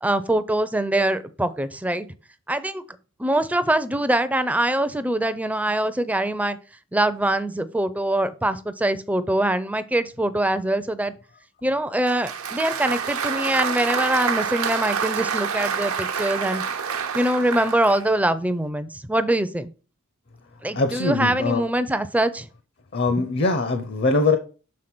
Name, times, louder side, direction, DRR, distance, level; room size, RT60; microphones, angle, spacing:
voice 1, 0.0-2.1 2.5-2.8 3.2-6.6 6.9-11.1 11.6-16.6 17.1-19.7 20.6-22.5 23.1-23.2, right 1 dB, 5° right, 0.5 m, -23 dB
Applause, 12.1-18.1, right 6 dB, 85° right, 1.0 m, -27 dB
voice 2, 20.7-21.6 22.9-24.4, left 3 dB, 50° left, 0.7 m, -22 dB
6.4 x 3.7 x 6.0 m
head